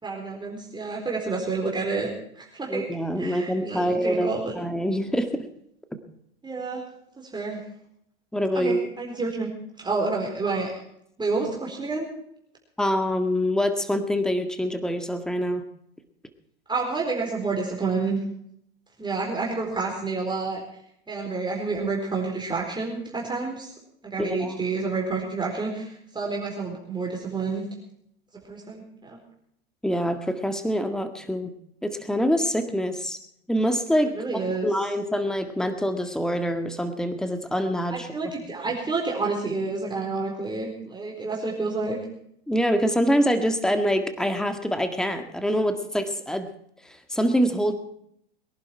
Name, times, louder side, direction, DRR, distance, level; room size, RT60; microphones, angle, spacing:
voice 1, 0.0-2.8 3.2-4.5 6.4-6.8 7.1-7.6 8.5-9.5 9.8-10.7 11.2-12.1 16.7-18.2 19.0-20.6 21.1-23.7 24.0-27.7 28.5-29.2 34.2-34.7 37.9-42.0, right 3 dB, 15° right, -1 dB, 4.3 m, -29 dB
voice 2, 2.7-5.5 8.3-8.8 12.8-15.6 24.2-24.5 29.8-31.5 31.8-33.2 33.5-34.1 34.6-38.3 42.5-46.5 47.1-47.7, equal, ahead, 8 dB, 1.9 m, -25 dB
23.0 x 11.0 x 4.5 m, 0.72 s
hypercardioid pair, 90°, 32 cm